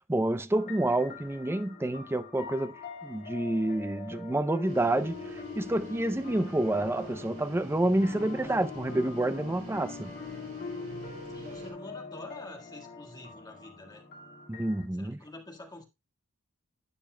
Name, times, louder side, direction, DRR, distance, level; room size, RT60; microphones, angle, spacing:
voice 1, 0.1-2.7 3.0-5.2 5.6-10.1 14.5-15.2, right 1 dB, 10° right, 0.5 m, -28 dB
sound 1, 0.5-14.8, left 4 dB, 45° left, 2.1 m, -43 dB
sound 2, 4.6-11.7, right 1 dB, 75° right, 3.8 m, -48 dB
voice 2, 11.3-14.0 14.9-15.8, left 2 dB, 20° left, 1.7 m, -47 dB
12.0 x 8.9 x 2.2 m
head